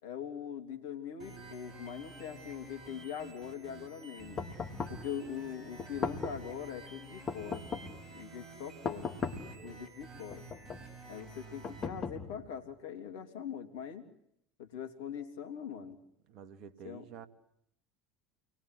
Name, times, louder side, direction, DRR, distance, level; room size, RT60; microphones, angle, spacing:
voice 1, 0.0-4.4 4.9-7.7 8.1-9.2 9.6-10.5 11.1-14.0 14.6-16.0 16.8-17.0, left 8 dB, 70° left, 8 dB, 3.3 m, -42 dB
sound 1, 1.2-11.9, right 3 dB, 35° right, 8.0 m, -51 dB
sound 2, 4.4-5.1 5.8-6.5 7.3-8.0 8.8-9.6 10.3-10.9 11.6-12.5, left 5 dB, 35° left, 4.2 m, -38 dB
voice 2, 16.3-17.3, right 7 dB, 55° right, 10 dB, 2.5 m, -50 dB
29.5 x 22.5 x 8.5 m, 0.74 s
hypercardioid pair, 75°, 0 cm